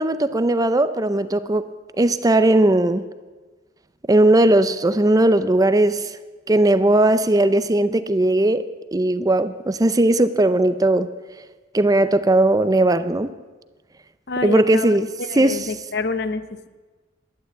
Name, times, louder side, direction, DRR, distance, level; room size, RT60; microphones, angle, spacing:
voice 1, 0.0-1.7 2.0-3.1 4.1-6.1 6.5-8.7 8.9-11.1 11.7-13.3 14.4-15.1 15.4-15.7, right 1 dB, 20° right, 13 dB, 0.5 m, -18 dB
voice 2, 14.3-14.9 15.3-16.7, left 3 dB, 60° left, 12 dB, 0.8 m, -27 dB
12.0 x 11.5 x 8.3 m, 1.3 s
head